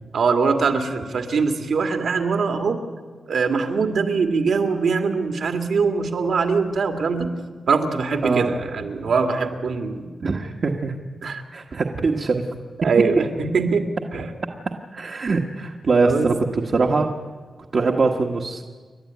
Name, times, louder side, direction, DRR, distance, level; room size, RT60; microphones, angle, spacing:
voice 1, 0.1-2.8 3.3-7.3 7.7-10.1 11.2-11.4 12.8-13.8 14.1-14.3 16.0-16.6, right 4 dB, 75° right, 5 dB, 2.1 m, -22 dB
voice 2, 8.2-8.5 10.2-11.0 11.5-12.4 14.9-17.1 17.7-18.6, right 4 dB, 50° right, 0 dB, 1.3 m, -22 dB
29.0 x 12.0 x 9.4 m, 1.5 s
wide cardioid pair, 140°, 0 cm